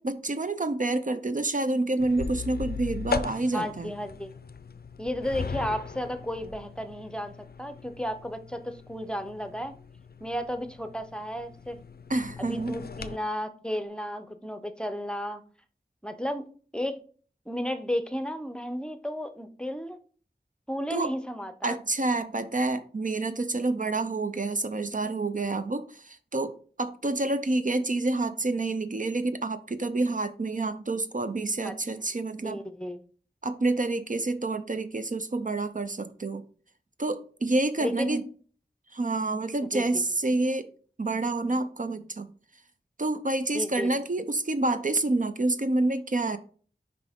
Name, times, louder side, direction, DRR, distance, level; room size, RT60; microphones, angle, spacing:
voice 1, 0.0-3.9 12.1-12.8 20.9-21.1 21.6-32.6 33.4-36.4 37.0-38.2 38.9-40.7 41.0-42.3 43.0-46.4, right 2 dB, 50° right, 10 dB, 0.5 m, -28 dB
sound 1, 2.0-13.2, left 5 dB, 65° left, 0.4 m, -38 dB
voice 2, 3.5-4.3 5.0-7.3 7.6-9.7 10.2-11.8 12.4-15.4 16.0-16.4 16.7-17.0 17.5-20.0 20.7-21.8 31.6-31.7 32.4-33.0 37.8-38.2 39.7-39.8 43.5-43.9, equal, 5° left, 9 dB, 0.6 m, -33 dB
5.9 x 4.9 x 3.5 m, 0.43 s
wide cardioid pair, 45°, 17 cm